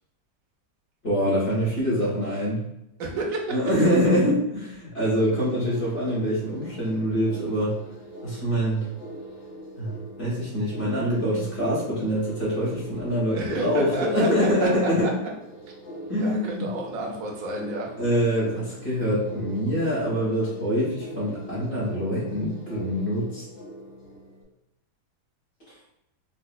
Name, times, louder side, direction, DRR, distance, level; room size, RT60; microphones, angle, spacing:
voice 1, 1.0-2.6 3.5-7.7 8.2-8.8 9.8-9.9 10.2-15.1 16.1-16.7 18.0-23.4, equal, 40° left, -8 dB, 1.4 m, -25 dB
voice 2, 3.0-3.5 13.3-14.7 16.2-17.9, right 2 dB, 60° right, -1 dB, 1.1 m, -31 dB
sound 1, 5.0-24.4, right 1 dB, 55° left, 0.6 m, -42 dB
4.3 x 2.4 x 2.4 m, 0.83 s
omnidirectional pair, 1.8 m